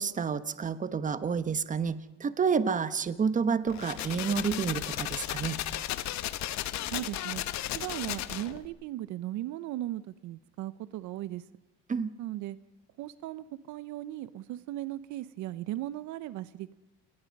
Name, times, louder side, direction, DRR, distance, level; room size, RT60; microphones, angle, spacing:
voice 1, 0.0-5.6 11.9-12.1, right 6 dB, 25° right, 13 dB, 1.1 m, -29 dB
sound 1, 3.7-8.7, left 13 dB, 65° left, 1.3 m, -35 dB
voice 2, 6.9-7.4 7.7-11.4 12.2-12.6 13.0-16.7, right 14 dB, 70° right, 17 dB, 0.8 m, -37 dB
28.5 x 19.5 x 5.4 m, 1.0 s
cardioid pair, 115°, 31 cm